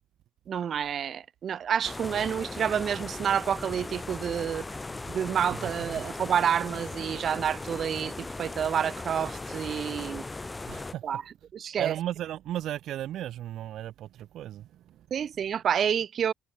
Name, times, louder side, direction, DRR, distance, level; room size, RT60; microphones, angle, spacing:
voice 1, 0.5-4.7 5.1-10.2 11.0-11.2 11.5-11.9 15.1-16.3, right 8 dB, 60° right, 1.6 m, -29 dB
sound 1, 1.8-10.9, left 3 dB, 20° left, 3.2 m, -38 dB
voice 2, 5.5-6.1 10.7-11.0 11.8-15.1, right 12 dB, 80° right, 2.2 m, -35 dB
cardioid pair, 90°, 0 cm